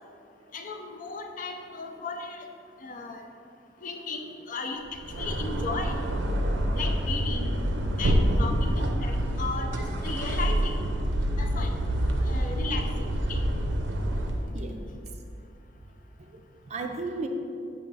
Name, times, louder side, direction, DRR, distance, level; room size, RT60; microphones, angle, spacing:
voice 1, 0.5-2.5 2.8-3.3 3.8-4.8 5.1-6.0 6.8-7.5 8.0-10.8 11.4-11.7 12.3-13.4, left 3 dB, 50° left, 4 dB, 0.5 m, -35 dB
sound 1, 4.9-14.5, right 1 dB, 85° right, 0.6 m, -27 dB
voice 2, 14.5-14.9 16.2-17.3, right 3 dB, 40° right, 4 dB, 0.5 m, -35 dB
7.0 x 2.9 x 5.4 m, 2.5 s
head